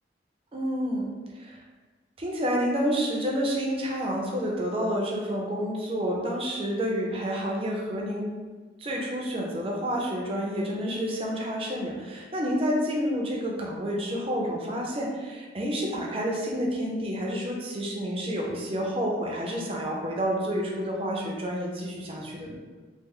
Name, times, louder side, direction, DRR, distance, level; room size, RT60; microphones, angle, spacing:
voice 1, 0.5-1.1 1.3-1.6 2.2-8.4 8.8-22.6, equal, 30° right, -1 dB, 0.5 m, -29 dB
3.1 x 2.0 x 3.5 m, 1.4 s
head